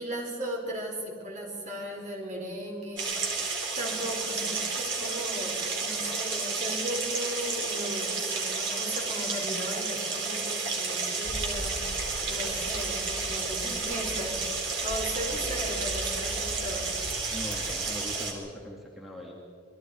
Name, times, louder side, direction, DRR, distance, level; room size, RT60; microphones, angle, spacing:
voice 1, 0.0-3.2 3.8-17.0, equal, 40° right, 0 dB, 4.3 m, -37 dB
sound 1, 3.0-18.3, right 4 dB, 60° right, 4.1 m, -31 dB
sound 2, 11.2-18.0, left 1 dB, 50° left, 2.6 m, -41 dB
voice 2, 15.3-15.7 17.3-19.3, equal, ahead, -3 dB, 2.6 m, -41 dB
27.5 x 21.5 x 4.8 m, 2.2 s
head